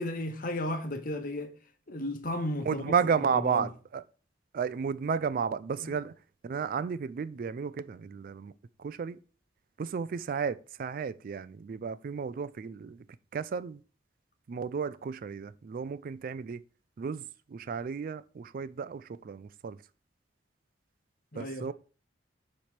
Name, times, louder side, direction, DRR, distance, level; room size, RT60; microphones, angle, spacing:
voice 1, 0.0-1.5 1.9-3.7 5.8-6.0 21.3-21.7, left 1 dB, 50° left, 0.9 m, -34 dB
voice 2, 2.7-4.0 4.5-6.1 6.4-8.5 8.8-9.2 9.8-13.0 13.3-13.8 14.5-16.6 17.0-17.2 17.5-19.8 21.4-21.7, right 6 dB, 50° right, 0.3 m, -32 dB
7.1 x 3.2 x 5.8 m
head